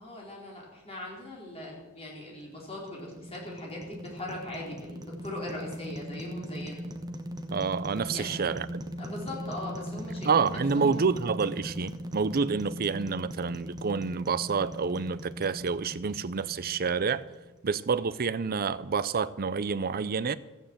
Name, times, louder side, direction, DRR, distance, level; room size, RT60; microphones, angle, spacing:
voice 1, 0.0-6.8 8.1-8.3 9.0-11.1, left 1 dB, 30° left, 4.2 m, -40 dB
sound 1, 2.4-17.6, equal, 20° right, 1.1 m, -40 dB
voice 2, 7.5-8.8 10.2-17.2 17.6-20.4, right 5 dB, 45° right, 0.6 m, -28 dB
14.0 x 9.1 x 7.6 m
head